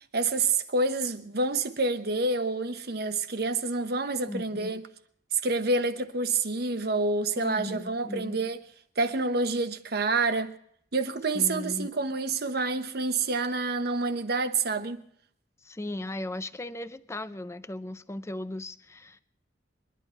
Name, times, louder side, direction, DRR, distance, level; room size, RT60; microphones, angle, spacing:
voice 1, 0.1-4.8 5.3-8.6 9.0-10.5 10.9-15.0, right 3 dB, 60° right, 1.0 m, -28 dB
voice 2, 4.3-4.7 7.3-8.4 11.3-11.9 15.6-19.2, left 1 dB, 15° left, 0.5 m, -37 dB
22.5 x 11.0 x 4.4 m
head